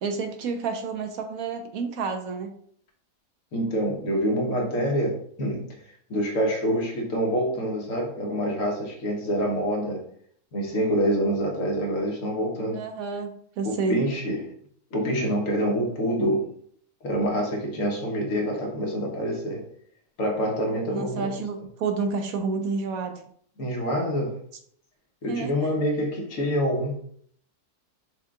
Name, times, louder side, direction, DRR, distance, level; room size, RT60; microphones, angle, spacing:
voice 1, 0.0-2.5 12.7-14.0 20.9-23.2 25.3-25.5, right 4 dB, 75° right, 6 dB, 1.0 m, -29 dB
voice 2, 3.5-5.6 6.1-10.0 10.5-12.8 13.6-14.5 14.9-16.5 17.0-19.6 20.2-21.3 23.6-24.4 25.2-27.0, equal, 60° left, 0 dB, 1.4 m, -26 dB
6.3 x 2.2 x 3.6 m, 0.62 s
omnidirectional pair, 1.6 m